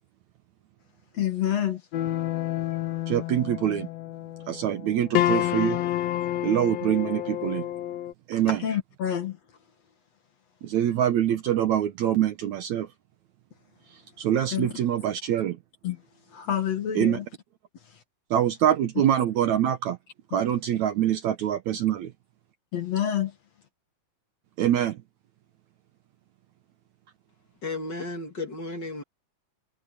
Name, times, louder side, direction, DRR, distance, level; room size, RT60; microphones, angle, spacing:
voice 1, 1.1-1.8 8.5-9.4 14.5-14.7 15.8-16.0 16.3-17.3 20.3-20.4 22.7-23.3, left 10 dB, 50° left, 2.7 m, -27 dB
sound 1, 1.9-8.1, left 13 dB, 75° left, 1.5 m, -29 dB
voice 2, 3.1-3.9 4.5-5.8 6.4-7.7 8.3-8.6 10.6-12.9 14.2-15.6 17.0-17.2 18.3-20.0 20.3-22.1 24.6-25.0, right 10 dB, 70° right, 2.0 m, -24 dB
voice 3, 27.6-29.0, left 2 dB, 35° left, 2.3 m, -33 dB
omnidirectional pair, 4.1 m